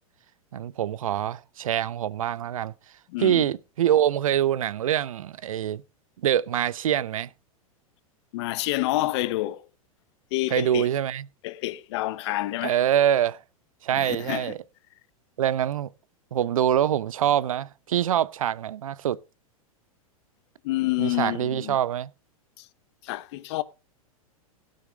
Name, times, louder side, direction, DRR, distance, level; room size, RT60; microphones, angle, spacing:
voice 1, 0.5-2.7 3.2-5.8 6.2-7.3 10.5-11.2 12.6-13.4 13.8-14.6 15.4-15.9 16.3-19.2 21.0-22.1, right 10 dB, 65° right, 0.6 m, -24 dB
voice 2, 3.1-3.5 8.3-9.7 10.3-10.9 11.4-12.8 13.9-14.5 20.6-21.8 22.6-22.7 23.0-23.6, left 18 dB, 50° left, 0.9 m, -28 dB
17.0 x 6.3 x 4.9 m
figure-of-eight pair, 95°, 19 cm